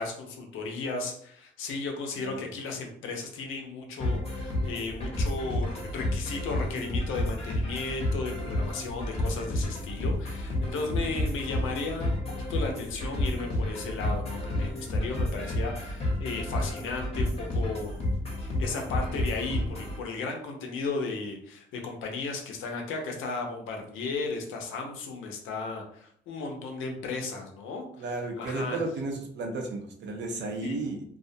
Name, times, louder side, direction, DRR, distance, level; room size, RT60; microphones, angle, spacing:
voice 1, 0.0-12.2 12.5-18.0 18.4-28.1 28.4-28.8 30.6-30.8, left 3 dB, 85° left, 2 dB, 0.6 m, -35 dB
sound 1, 4.0-20.0, left 1 dB, 30° left, 0.8 m, -31 dB
voice 2, 28.0-31.0, right 2 dB, 65° right, 3 dB, 0.6 m, -33 dB
2.3 x 2.1 x 2.6 m, 0.64 s
cardioid pair, 90°, 20 cm